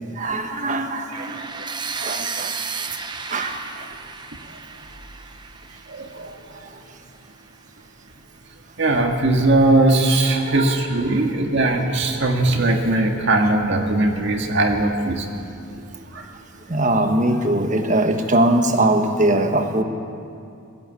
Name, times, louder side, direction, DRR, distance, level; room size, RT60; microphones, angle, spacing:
voice 1, 0.2-1.4 2.0-2.5 3.3-3.9 10.5-10.8 11.1-11.2 15.7-15.8 16.7-19.8, right 1 dB, 35° right, 5 dB, 1.5 m, -21 dB
sound 1, 1.1-7.0, right 5 dB, 20° right, 0.8 m, -33 dB
voice 2, 5.9-6.8 8.8-15.3 16.1-16.3, right 2 dB, 55° right, 2 dB, 1.9 m, -20 dB
21.0 x 14.5 x 8.5 m, 2.5 s
head